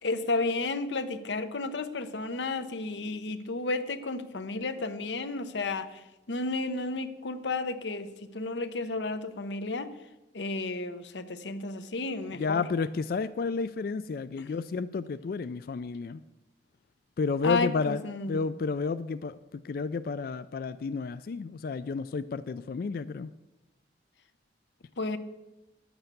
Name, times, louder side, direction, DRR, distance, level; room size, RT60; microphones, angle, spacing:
voice 1, 0.0-9.9 10.3-12.7 14.4-14.5 17.4-18.4 25.0-25.2, left 3 dB, 80° left, 10 dB, 0.8 m, -32 dB
voice 2, 12.4-16.2 17.2-18.0 18.3-19.4 19.6-23.3, left 4 dB, 55° left, 13 dB, 0.3 m, -31 dB
10.5 x 7.9 x 6.7 m, 1.0 s
head